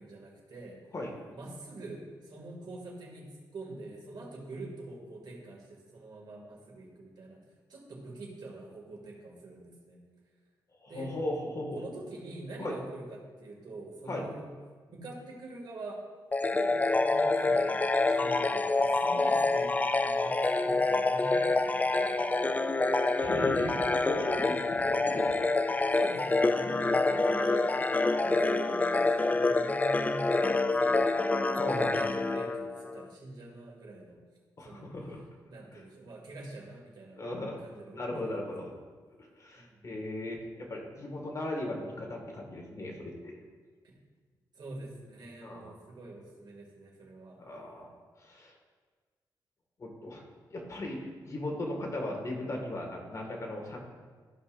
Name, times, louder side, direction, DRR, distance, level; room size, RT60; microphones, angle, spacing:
voice 1, 0.0-0.8 1.3-7.4 7.7-10.0 10.9-11.2 11.7-14.5 14.9-16.0 16.5-23.2 25.9-27.8 28.1-31.4 31.7-34.2 34.6-34.9 35.5-37.2 37.6-38.5 39.6-40.0 43.8-44.0 44.5-47.4, right 2 dB, 65° right, -2 dB, 2.3 m, -45 dB
voice 2, 10.8-11.8 12.6-12.7 14.1-14.2 23.2-25.5 26.6-26.7 31.5-32.0 34.6-35.2 35.7-35.8 37.2-37.6 37.9-38.7 39.4-43.4 45.4-45.6 47.4-47.9 48.2-48.5 49.8-50.2 50.5-53.8, left 1 dB, 45° left, 0 dB, 1.9 m, -37 dB
sound 1, 16.3-33.1, left 3 dB, 20° left, 0.3 m, -27 dB
14.5 x 5.5 x 2.6 m, 1.5 s
cardioid pair, 100°, 8 cm